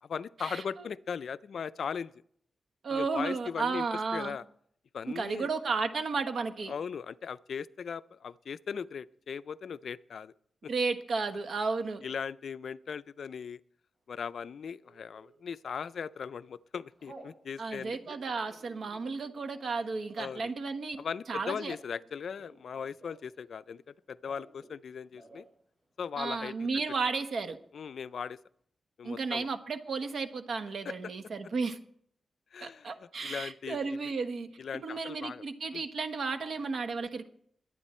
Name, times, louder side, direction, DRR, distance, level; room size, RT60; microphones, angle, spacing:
voice 1, 0.0-2.1 2.9-3.8 4.1-4.4 4.9-5.5 6.7-10.3 12.0-13.6 14.1-18.0 20.2-20.5 21.0-23.8 24.1-25.4 26.0-26.5 27.7-28.4 29.0-29.5 30.8-30.9 32.5-34.1 34.6-35.4 35.7-35.9, left 6 dB, 70° left, 15 dB, 0.4 m, -38 dB
voice 2, 2.8-4.4 5.1-6.7 10.7-12.0 17.6-21.0 21.3-21.7 26.2-27.6 29.0-31.8 32.6-34.5 34.8-37.3, right 4 dB, 65° right, 9 dB, 1.3 m, -33 dB
Telephone, 14.8-15.4 15.9-16.2 16.5-17.4 17.9-23.4 23.7-24.8 25.1-25.5 25.8-25.9 26.2-26.8, right 1 dB, 35° right, 7.2 m, -56 dB
22.0 x 9.0 x 4.3 m, 0.66 s
wide cardioid pair, 105°, 0 cm